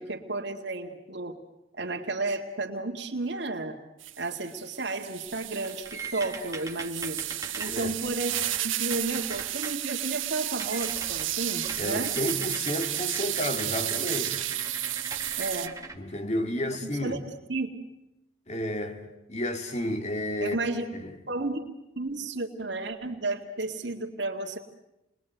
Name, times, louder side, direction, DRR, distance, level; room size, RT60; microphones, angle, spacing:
voice 1, 0.0-1.4 1.8-3.8 4.2-7.2 7.6-12.1 15.4-15.7 16.8-17.7 20.4-20.9 21.3-21.6 22.0-24.6, right 2 dB, 60° right, 2.0 m, -32 dB
sound 1, 4.0-15.7, right 14 dB, 85° right, 1.3 m, -32 dB
sound 2, 5.3-9.8 10.1-10.3 10.6-16.0, right 3 dB, 15° right, 1.6 m, -41 dB
voice 2, 7.7-8.0 11.8-14.5 16.0-17.2 18.5-20.6 21.0-21.2, left 1 dB, 35° left, 2.0 m, -31 dB
29.0 x 21.5 x 9.2 m
head